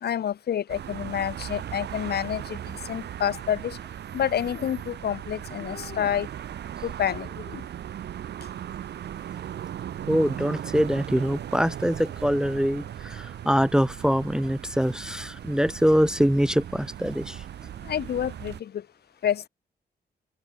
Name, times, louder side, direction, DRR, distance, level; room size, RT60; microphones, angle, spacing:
voice 1, 0.0-3.8 4.1-6.3 6.8-7.6 17.8-18.8 19.2-19.5, left 9 dB, 70° left, 0.9 m, -28 dB
sound 1, 0.7-18.6, right 10 dB, 85° right, 1.3 m, -38 dB
voice 2, 10.1-17.4, equal, 5° right, 0.6 m, -24 dB
open air
cardioid pair, 70°, 17 cm